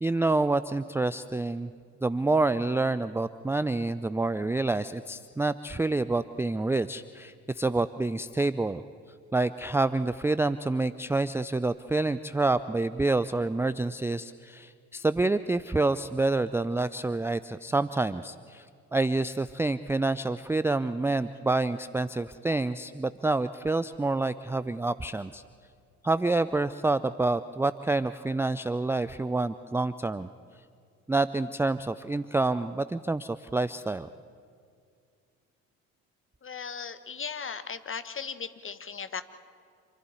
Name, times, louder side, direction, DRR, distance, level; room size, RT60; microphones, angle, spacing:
voice 1, 0.0-1.7 2.0-8.8 9.3-18.7 18.9-25.4 26.0-30.3 31.1-34.1, right 2 dB, 5° right, 14 dB, 0.5 m, -27 dB
voice 2, 36.4-39.2, left 6 dB, 30° left, 11 dB, 1.4 m, -37 dB
27.5 x 12.0 x 9.5 m, 2.2 s
figure-of-eight pair, 50°, 42 cm